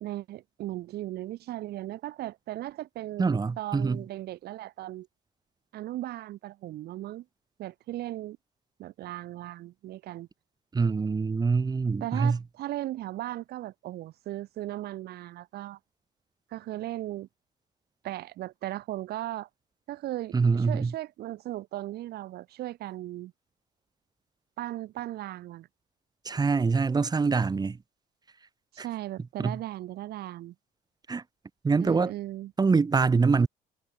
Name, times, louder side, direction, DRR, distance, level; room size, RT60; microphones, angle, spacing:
voice 1, 0.0-5.1 5.7-7.2 7.6-8.4 8.8-10.3 12.0-15.8 16.5-17.3 18.0-19.5 19.9-23.3 24.6-25.7 28.7-30.5 31.8-32.5, right 15 dB, 70° right, 1.4 m, -37 dB
voice 2, 3.2-4.0 10.7-12.4 20.3-20.9 26.2-27.8 28.8-28.9 29.4-29.6 31.1-31.2 31.6-32.1 32.6-33.5, right 4 dB, 25° right, 1.5 m, -24 dB
cardioid pair, 110°, 17 cm